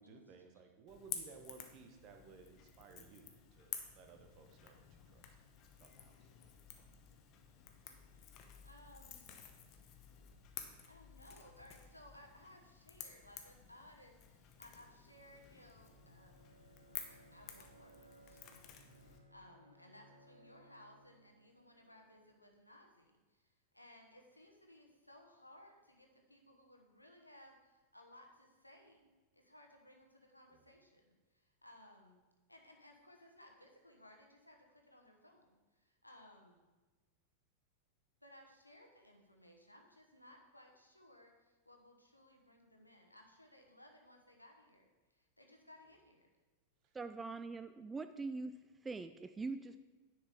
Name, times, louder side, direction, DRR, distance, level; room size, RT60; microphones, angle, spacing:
voice 1, 0.0-5.3 5.8-6.3 30.5-30.6 46.8-47.0, right 5 dB, 40° right, 5 dB, 1.2 m, -59 dB
Crackle / Crack, 0.9-19.2, left 8 dB, 35° left, 0.9 m, -52 dB
voice 2, 8.6-9.3 10.8-16.5 17.1-18.8 19.3-32.2 32.5-36.6 38.2-46.3, left 1 dB, 85° left, 2 dB, 1.1 m, -61 dB
Bowed string instrument, 14.6-22.5, right 2 dB, 80° right, 0.8 m, -65 dB
voice 3, 46.9-49.8, right 3 dB, 15° right, 10 dB, 0.3 m, -43 dB
9.9 x 6.0 x 3.6 m, 1.2 s
figure-of-eight pair, 90°, 0 cm